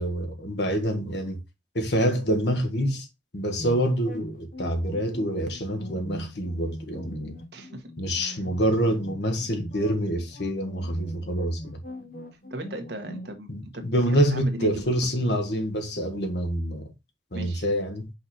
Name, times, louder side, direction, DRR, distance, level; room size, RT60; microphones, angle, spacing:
voice 1, 0.0-1.4 1.7-3.1 3.3-7.4 8.0-11.8 13.5-16.9 17.3-18.1, equal, 65° left, 1.6 m, -26 dB
sound 1, 3.6-13.3, left 1 dB, 45° left, 0.9 m, -41 dB
voice 2, 7.5-7.9 8.2-8.4 12.5-13.5 13.7-14.8 17.3-17.6, right 1 dB, 65° right, 1.4 m, -37 dB
5.7 x 4.1 x 4.2 m
head